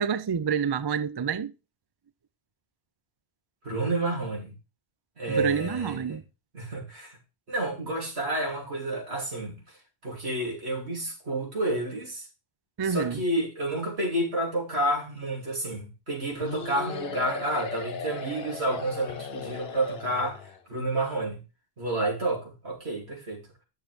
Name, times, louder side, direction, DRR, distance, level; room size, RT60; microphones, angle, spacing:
voice 1, 0.0-1.5 5.3-6.2 12.8-13.2, right 7 dB, 45° right, 0.3 m, -28 dB
voice 2, 3.6-4.5 5.2-6.2 6.5-7.2 7.5-9.6 10.0-12.2 12.8-20.4 20.7-21.4 21.8-23.4, right 1 dB, 90° right, 3.2 m, -30 dB
sound 1, 16.4-20.6, left 5 dB, 75° left, 1.0 m, -37 dB
10.0 x 6.5 x 3.3 m
omnidirectional pair, 1.1 m